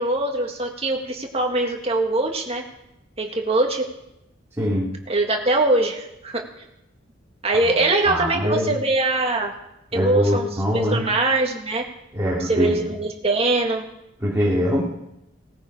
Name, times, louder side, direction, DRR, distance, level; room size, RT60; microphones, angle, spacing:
voice 1, 0.0-2.6 3.2-3.9 5.1-6.5 7.4-9.5 9.9-10.5 10.7-11.9 12.4-13.9, right 2 dB, 30° right, 2 dB, 1.9 m, -22 dB
voice 2, 4.6-4.9 7.6-7.8 8.0-8.7 9.9-11.1 12.1-12.9 14.2-14.8, equal, 15° right, -7 dB, 2.9 m, -23 dB
18.5 x 13.5 x 4.9 m, 0.86 s
head